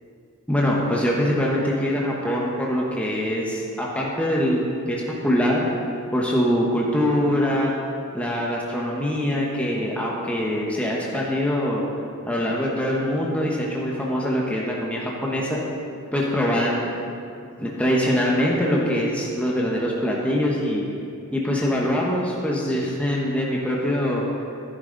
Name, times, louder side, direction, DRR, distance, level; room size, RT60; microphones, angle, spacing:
voice 1, 0.5-5.6 6.1-7.7 8.1-11.8 12.3-15.6 16.1-16.9 17.6-20.8 21.3-24.2, equal, 5° left, -4 dB, 1.2 m, -23 dB
14.5 x 10.0 x 4.0 m, 2.4 s
head